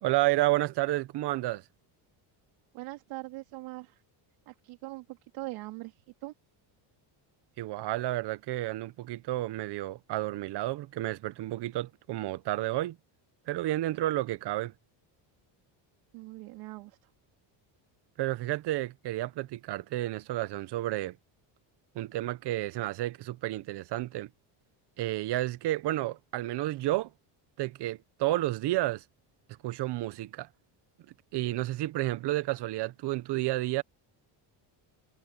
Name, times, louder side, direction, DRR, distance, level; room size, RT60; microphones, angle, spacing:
voice 1, 0.0-1.6 7.6-13.0 13.5-14.7 18.2-21.2 21.9-24.3 25.0-27.1 27.6-29.0 29.6-30.5 31.3-33.8, right 16 dB, 55° right, 1.0 m, -31 dB
voice 2, 2.7-4.0 4.5-6.3 16.1-17.1, right 20 dB, 85° right, 3.0 m, -42 dB
cardioid pair, 150°, 50 cm